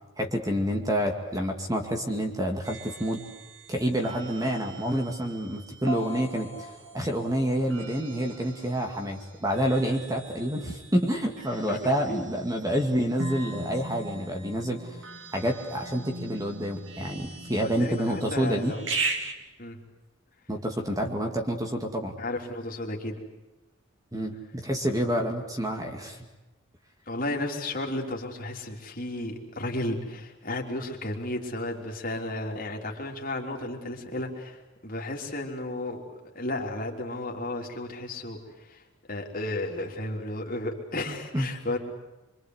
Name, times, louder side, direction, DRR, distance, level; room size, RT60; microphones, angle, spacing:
voice 1, 0.2-3.2 3.7-15.0 15.3-18.8 20.5-22.1 24.1-26.2 41.3-41.5, equal, 15° right, 3 dB, 2.2 m, -28 dB
sound 1, 2.6-19.3, right 3 dB, 60° right, 2.7 m, -39 dB
voice 2, 11.7-12.3 17.6-18.8 19.6-19.8 22.2-23.2 27.1-38.8 39.1-41.8, left 1 dB, 40° left, 1 dB, 3.5 m, -33 dB
25.5 x 25.0 x 8.1 m, 1.1 s
head